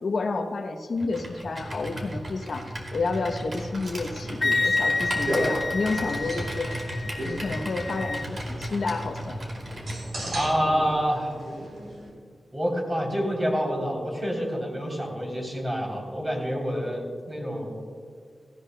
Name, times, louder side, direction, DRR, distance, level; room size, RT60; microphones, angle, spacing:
voice 1, 0.0-6.7 7.2-9.4, left 3 dB, 60° left, 6 dB, 0.7 m, -30 dB
Computer keyboard, 1.0-10.0, right 1 dB, 45° right, 2.4 m, -36 dB
sound 1, 3.7-12.1, right 1 dB, 65° right, 3.7 m, -36 dB
Wind instrument woodwind instrument, 4.4-8.3, left 3 dB, 35° left, 0.3 m, -29 dB
voice 2, 10.3-11.4 12.5-17.8, equal, 20° right, -2 dB, 3.3 m, -27 dB
17.0 x 16.0 x 2.2 m, 2.1 s
wide cardioid pair, 140°, 0 cm